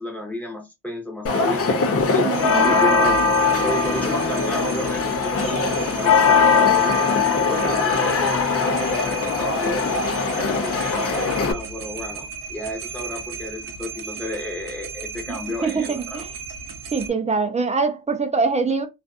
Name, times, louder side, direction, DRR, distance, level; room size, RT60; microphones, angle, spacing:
voice 1, 0.0-10.0 10.3-16.2, left 1 dB, 5° left, 0.8 m, -32 dB
sound 1, 1.3-11.5, left 4 dB, 40° left, 0.5 m, -20 dB
voice 2, 2.2-2.8 15.3-15.4 15.6-16.3 16.9-18.9, right 4 dB, 20° right, 0.4 m, -23 dB
sound 2, 2.3-17.1, right 5 dB, 65° right, 0.6 m, -36 dB
2.4 x 2.4 x 2.4 m
wide cardioid pair, 135°, 35 cm